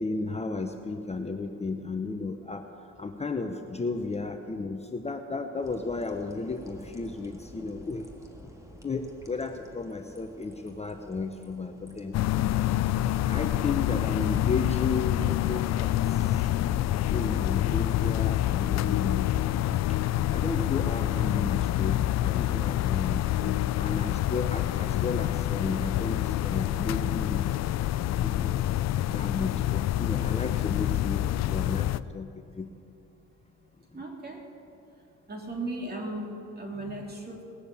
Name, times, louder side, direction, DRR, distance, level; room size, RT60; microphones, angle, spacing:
voice 1, 0.0-2.6 3.0-8.0 8.4-8.5 8.8-12.2 12.6-12.9 13.3-16.4 17.0-19.3 19.9-27.4 28.2-28.6 29.1-32.3 32.6-32.7 33.9-34.0, left 3 dB, 20° left, 5 dB, 0.8 m, -34 dB
sound 1, 5.6-13.7, equal, 10° right, 2.0 m, -50 dB
sound 2, 12.1-32.0, left 13 dB, 60° left, 0.4 m, -27 dB
voice 2, 33.9-34.5 35.3-37.4, right 2 dB, 30° right, 0 dB, 3.1 m, -36 dB
18.0 x 6.9 x 8.5 m, 2.7 s
cardioid pair, 90°, 30 cm